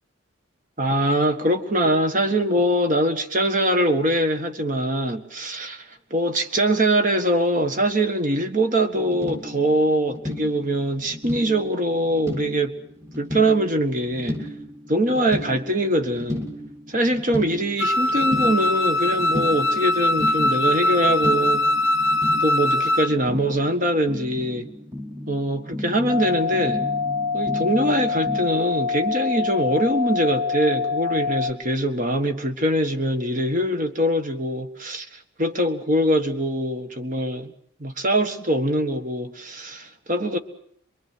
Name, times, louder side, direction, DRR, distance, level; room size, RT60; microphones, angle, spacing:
voice 1, 0.8-12.7 13.2-14.5 14.9-16.5 16.9-21.6 22.4-24.7 25.3-26.8 27.3-37.5 37.8-40.4, right 1 dB, 40° right, 1.6 m, -23 dB
sound 1, 9.0-28.5, left 1 dB, 15° right, 2.6 m, -35 dB
Wind instrument woodwind instrument, 17.8-23.1, left 1 dB, 75° left, 0.8 m, -21 dB
sound 2, 26.1-31.5, left 5 dB, ahead, 0.8 m, -25 dB
24.5 x 23.0 x 6.2 m
head